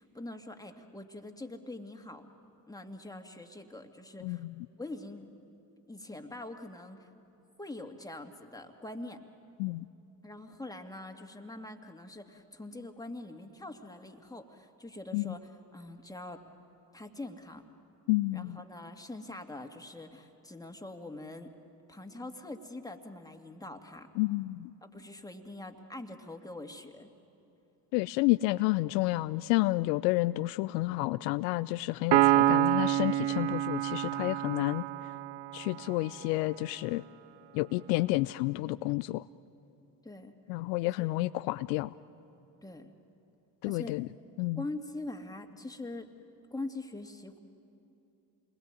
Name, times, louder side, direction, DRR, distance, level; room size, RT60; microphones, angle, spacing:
voice 1, 0.0-2.3 2.7-4.4 4.8-5.3 5.9-7.1 7.6-9.2 10.2-16.5 16.9-17.7 18.3-21.5 21.9-24.1 24.8-27.1 40.0-40.3 41.0-41.1 42.6-42.9 43.6-44.0 44.6-46.1 46.5-47.4, left 2 dB, 5° left, 4 dB, 2.3 m, -43 dB
voice 2, 4.2-4.7 9.6-9.9 15.1-15.3 18.1-18.6 24.2-24.7 27.9-34.8 35.5-37.0 37.5-39.2 40.5-41.9 43.6-44.1 44.4-44.6, left 20 dB, 75° left, 15 dB, 0.6 m, -30 dB
Piano, 32.1-35.7, right 14 dB, 60° right, 0.7 m, -27 dB
28.5 x 21.0 x 9.2 m, 2.8 s
hypercardioid pair, 50°, 48 cm